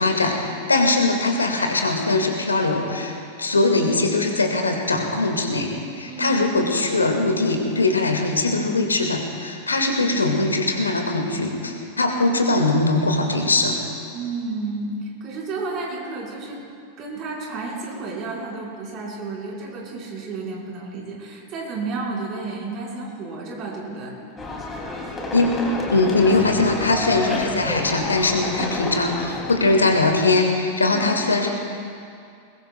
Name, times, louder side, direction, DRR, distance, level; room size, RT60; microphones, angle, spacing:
voice 1, 0.0-13.8 25.3-25.5 25.9-31.5, left 2 dB, 75° left, 3 dB, 1.8 m, -21 dB
voice 2, 6.1-6.5 9.6-10.1 14.1-16.6 17.0-24.2 30.8-31.0, right 3 dB, 35° right, -3 dB, 4.4 m, -32 dB
sound 1, 24.4-30.4, left 2 dB, 15° left, 2.6 m, -30 dB
21.5 x 21.5 x 2.3 m, 2.4 s
figure-of-eight pair, 90°, 0 cm